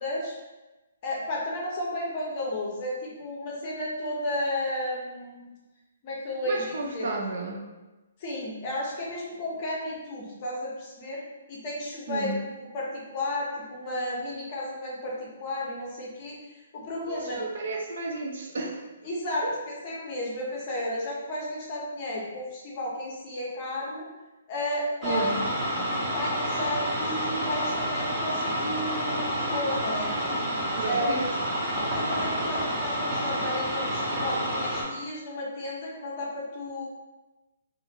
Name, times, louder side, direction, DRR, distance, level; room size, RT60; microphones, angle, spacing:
voice 1, 0.0-0.3 1.0-5.5 6.0-7.1 8.2-11.2 11.5-16.3 16.7-17.4 19.0-24.0 24.5-25.2 26.1-30.1 30.9-31.2 31.8-36.8, left 1 dB, 30° left, -4 dB, 0.7 m, -33 dB
voice 2, 6.4-7.6 12.1-12.4 17.1-18.8 19.4-19.6 25.0-25.4 30.7-31.3, right 3 dB, 60° right, 0 dB, 0.5 m, -32 dB
sound 1, 25.0-34.8, equal, 15° right, 0.6 m, -29 dB
2.5 x 2.4 x 2.8 m, 1.1 s
hypercardioid pair, 170°, 0 cm